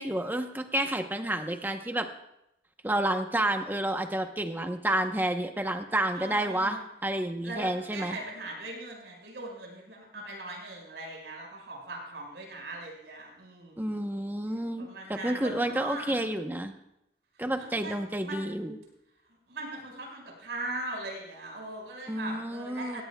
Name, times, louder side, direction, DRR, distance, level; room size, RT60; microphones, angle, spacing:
voice 1, 0.0-2.1 2.8-8.2 13.8-16.7 17.4-18.8 22.1-23.0, right 1 dB, 10° right, 6 dB, 0.8 m, -30 dB
voice 2, 6.1-6.8 7.4-14.0 14.8-16.2 17.6-18.0 18.2-18.4 19.5-23.0, right 2 dB, 75° right, 0 dB, 5.1 m, -40 dB
17.5 x 16.5 x 2.3 m, 0.84 s
head